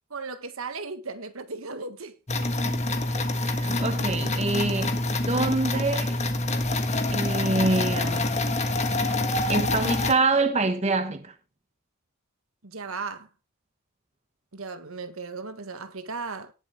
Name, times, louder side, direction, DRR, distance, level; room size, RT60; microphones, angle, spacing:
voice 1, 0.1-2.2 9.0-9.3 12.6-13.3 14.5-16.5, right 4 dB, 70° right, 1.5 m, -36 dB
sound 1, 2.3-10.1, left 2 dB, 30° left, 1.5 m, -26 dB
voice 2, 3.3-5.0 5.3-6.2 7.1-8.3 9.5-11.3, right 3 dB, 30° right, 1.0 m, -26 dB
18.0 x 7.5 x 3.5 m
head